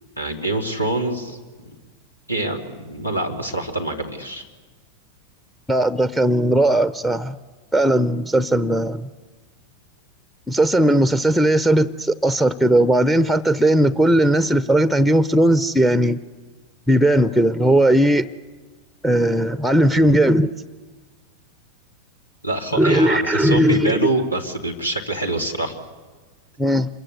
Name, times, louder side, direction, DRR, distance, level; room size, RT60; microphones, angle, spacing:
voice 1, 0.2-1.7 2.3-4.4 22.4-25.7, right 2 dB, 85° left, 2.9 m, -25 dB
voice 2, 5.7-7.3 7.7-9.1 10.5-16.2 16.9-18.3 19.0-20.5 22.7-23.9 26.6-26.9, right 1 dB, ahead, 0.7 m, -17 dB
27.5 x 22.0 x 8.2 m
figure-of-eight pair, 90°, 0 cm